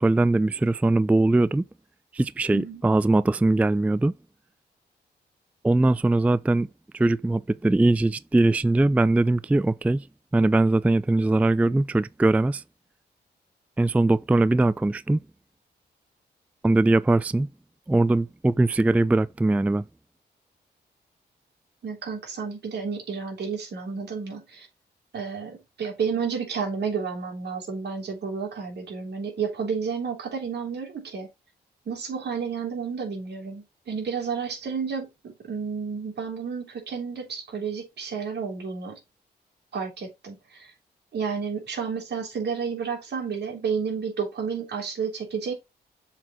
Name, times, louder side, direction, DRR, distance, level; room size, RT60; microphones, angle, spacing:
voice 1, 0.0-1.6 2.1-4.1 5.6-6.7 6.9-10.1 10.3-12.6 13.8-15.2 16.6-17.5 17.9-19.8, right 2 dB, 10° right, 0.3 m, -21 dB
voice 2, 21.8-24.7 25.1-31.3 31.9-39.0 39.7-40.7 41.1-45.5, right 6 dB, 70° right, 3.1 m, -31 dB
7.2 x 4.1 x 4.4 m
cardioid pair, 65°, 18 cm